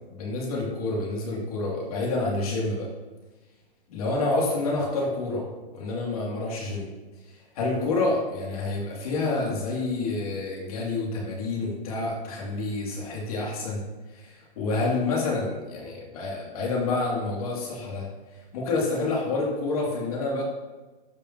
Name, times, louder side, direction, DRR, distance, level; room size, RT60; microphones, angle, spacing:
voice 1, 0.1-2.9 3.9-6.9 7.3-13.9 14.1-18.1 18.5-20.4, left 3 dB, 40° left, -3 dB, 2.3 m, -28 dB
12.0 x 5.3 x 2.8 m, 1.2 s
hypercardioid pair, 175°, 30 cm